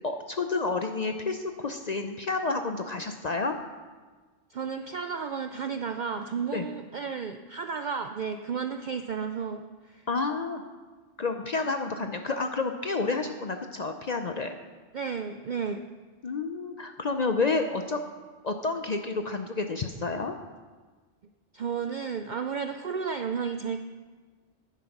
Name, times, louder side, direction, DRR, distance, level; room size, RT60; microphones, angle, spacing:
voice 1, 0.0-3.6 6.5-6.7 10.1-10.6 11.2-14.6 16.2-18.0 18.4-20.3, left 3 dB, 50° left, 6 dB, 0.5 m, -30 dB
voice 2, 4.5-10.1 14.9-15.9 21.5-23.8, right 6 dB, 65° right, 7 dB, 0.4 m, -33 dB
10.0 x 9.1 x 5.9 m, 1.4 s
omnidirectional pair, 1.3 m